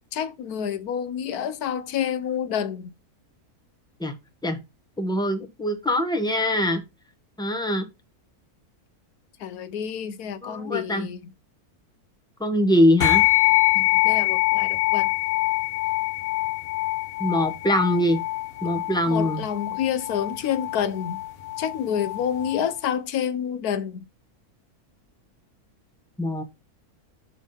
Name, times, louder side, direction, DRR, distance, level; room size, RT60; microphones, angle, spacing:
voice 1, 0.1-2.9 9.4-11.3 13.7-15.1 19.1-21.2 21.6-24.1, left 8 dB, 75° left, 1.2 m, -28 dB
voice 2, 5.0-6.8 7.4-7.9 10.4-11.1 12.4-13.2 17.2-18.2 18.6-19.4 26.2-26.4, left 1 dB, 5° left, 0.9 m, -23 dB
sound 1, 13.0-22.7, left 18 dB, 50° left, 0.8 m, -24 dB
6.3 x 3.5 x 5.5 m
omnidirectional pair, 1.6 m